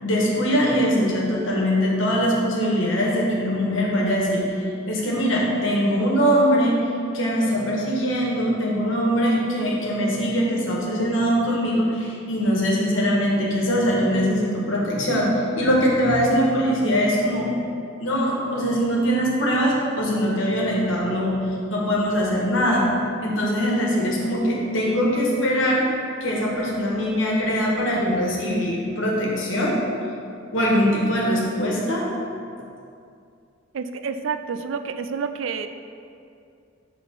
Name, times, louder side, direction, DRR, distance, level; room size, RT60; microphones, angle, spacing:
voice 1, 0.0-4.4 4.9-6.7 7.1-17.5 18.0-21.4 21.7-22.9 23.2-25.8 26.2-29.8 30.5-32.0, equal, 75° left, -3 dB, 1.3 m, -22 dB
voice 2, 33.7-35.7, right 6 dB, 75° right, 8 dB, 0.4 m, -29 dB
5.7 x 3.7 x 5.8 m, 2.5 s
head